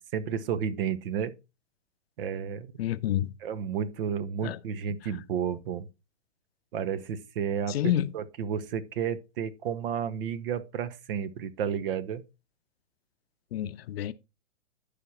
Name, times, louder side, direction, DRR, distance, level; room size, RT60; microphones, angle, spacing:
voice 1, 0.0-1.3 2.2-2.7 3.4-5.9 6.7-12.2, right 8 dB, 50° right, 0.8 m, -32 dB
voice 2, 2.8-3.3 4.4-4.6 7.7-8.1 13.5-14.1, left 12 dB, 55° left, 0.6 m, -28 dB
11.0 x 5.0 x 4.2 m
hypercardioid pair, 125°, 37 cm